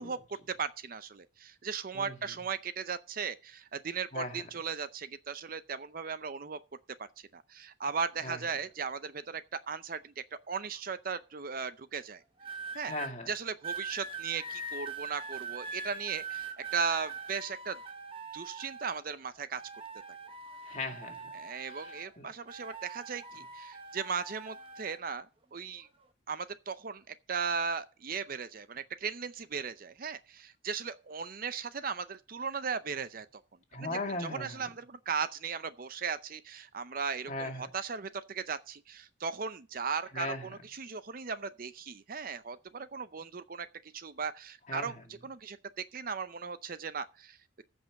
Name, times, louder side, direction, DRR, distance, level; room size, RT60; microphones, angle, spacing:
voice 1, 0.0-6.6 7.2-12.2 12.7-12.9 13.3-17.8 18.3-19.6 21.3-25.3 25.5-25.9 26.3-33.3 33.8-44.9 45.2-47.6, right 5 dB, 45° right, 0.6 m, -37 dB
voice 2, 1.9-2.3 4.1-4.4 8.2-8.5 12.9-13.3 20.6-21.3 21.7-22.2 33.7-34.7 37.3-37.7 40.1-40.5 44.7-45.0, left 2 dB, 40° left, 2.2 m, -38 dB
sound 1, 12.4-13.1 13.6-19.2 19.5-22.2 22.5-25.0 25.8-26.1, right 4 dB, 30° right, 1.3 m, -42 dB
14.5 x 5.6 x 6.4 m
head